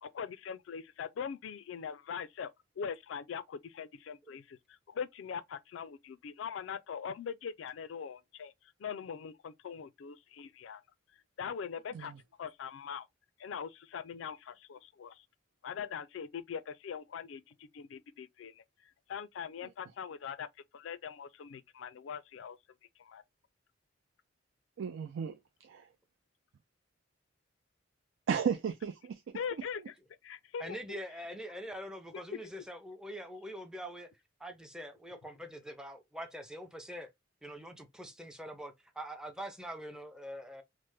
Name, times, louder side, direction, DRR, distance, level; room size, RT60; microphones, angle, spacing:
voice 1, 0.0-2.5 2.8-8.5 8.8-10.8 11.4-12.1 12.4-13.1 13.4-15.2 15.6-18.6 19.1-20.5 20.7-22.6 23.0-23.2 29.3-29.9 30.2-31.0 32.1-32.2, left 7 dB, 75° left, 0.4 m, -42 dB
voice 2, 24.8-25.4 25.6-25.9 28.3-29.2, right 7 dB, 80° right, 0.4 m, -34 dB
voice 3, 30.6-34.1 34.4-37.1 37.4-40.6, equal, 5° right, 0.5 m, -44 dB
3.2 x 2.0 x 3.0 m
head